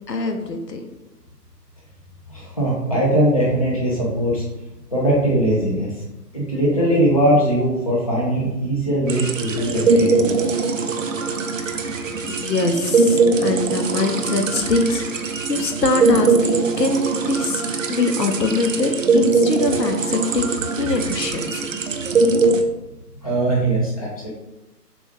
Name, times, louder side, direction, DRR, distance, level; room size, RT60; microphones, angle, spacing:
voice 1, 0.1-0.8 12.3-17.6 17.9-20.5 20.8-21.7, left 3 dB, 75° left, 6 dB, 0.8 m, -23 dB
voice 2, 2.3-4.4 4.9-6.0 6.3-10.4 23.2-24.3, right 1 dB, 25° left, -5 dB, 0.5 m, -20 dB
sound 1, 9.1-22.6, right 3 dB, 55° right, 0.5 m, -21 dB
6.9 x 2.3 x 3.1 m, 0.96 s
figure-of-eight pair, 135°, 49 cm